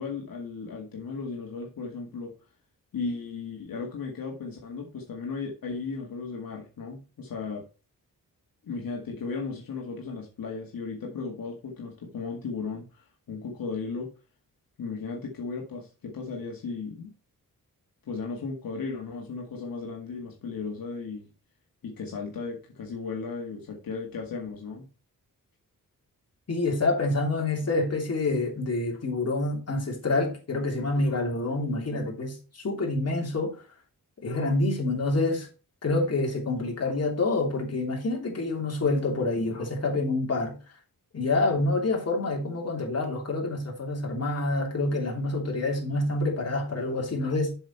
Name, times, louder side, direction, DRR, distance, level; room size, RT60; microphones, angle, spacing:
voice 1, 0.0-2.3 2.9-7.7 8.6-14.1 14.8-17.1 18.0-21.3 21.8-24.9, left 4 dB, 75° left, 2.0 m, -35 dB
voice 2, 26.5-33.6 34.2-35.5 35.8-40.6 41.1-47.5, left 2 dB, 45° left, 3.0 m, -27 dB
7.5 x 6.4 x 4.4 m
wide cardioid pair, 110°, 35 cm